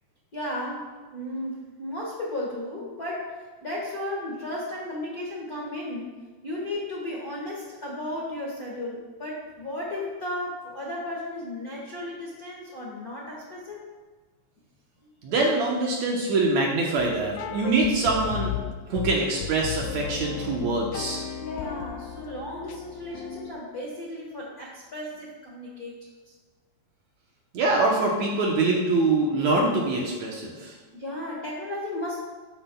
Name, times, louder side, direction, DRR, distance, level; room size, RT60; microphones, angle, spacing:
voice 1, 0.3-6.1 6.4-13.8 21.4-26.0 30.9-32.2, left 1 dB, 45° left, -5 dB, 1.2 m, -34 dB
voice 2, 15.2-18.6 18.9-21.2 27.5-30.8, right 3 dB, 65° right, -2 dB, 2.0 m, -24 dB
sound 1, 17.0-23.5, left 9 dB, 85° left, 1.7 m, -35 dB
11.5 x 8.8 x 2.3 m, 1.3 s
omnidirectional pair, 3.9 m